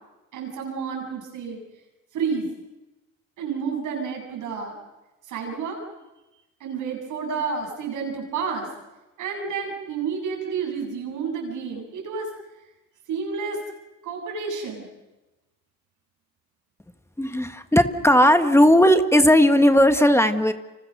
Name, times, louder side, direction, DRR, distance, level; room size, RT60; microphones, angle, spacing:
voice 1, 0.3-1.6 2.1-2.5 3.4-4.8 5.3-5.8 6.6-8.7 9.2-12.3 13.1-13.6 14.0-14.9, right 5 dB, 85° right, 1 dB, 8.0 m, -30 dB
voice 2, 17.2-20.5, equal, 10° left, 8 dB, 1.5 m, -16 dB
29.5 x 26.0 x 6.7 m, 1.0 s
cardioid pair, 90°, 30 cm